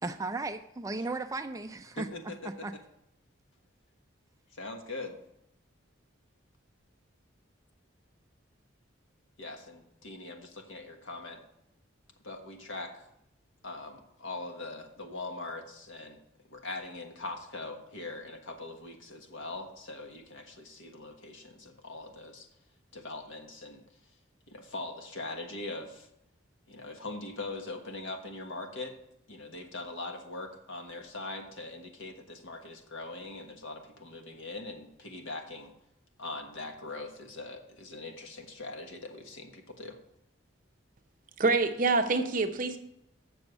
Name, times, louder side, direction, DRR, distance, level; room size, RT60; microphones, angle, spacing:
voice 1, 0.0-2.1 2.4-2.7, right 3 dB, 15° right, 8 dB, 0.3 m, -35 dB
voice 2, 2.0-2.7 4.5-5.2 9.4-11.4 12.2-13.1 13.6-16.2 16.5-22.5 22.9-23.8 24.5-26.1 26.7-28.9 29.3-35.7 36.2-40.0, left 2 dB, 75° left, 4 dB, 1.4 m, -41 dB
voice 3, 41.4-42.8, right 3 dB, 40° right, 6 dB, 0.7 m, -26 dB
7.0 x 7.0 x 7.9 m, 0.81 s
head